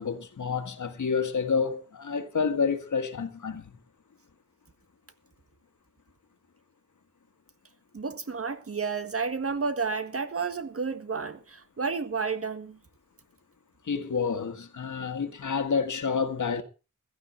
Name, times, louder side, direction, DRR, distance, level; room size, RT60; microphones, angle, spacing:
voice 1, 0.0-3.8 13.9-16.6, left 5 dB, 65° left, 1.8 m, -29 dB
voice 2, 7.9-12.8, right 5 dB, 45° right, 1.7 m, -31 dB
15.5 x 12.5 x 4.4 m
wide cardioid pair, 110°, 32 cm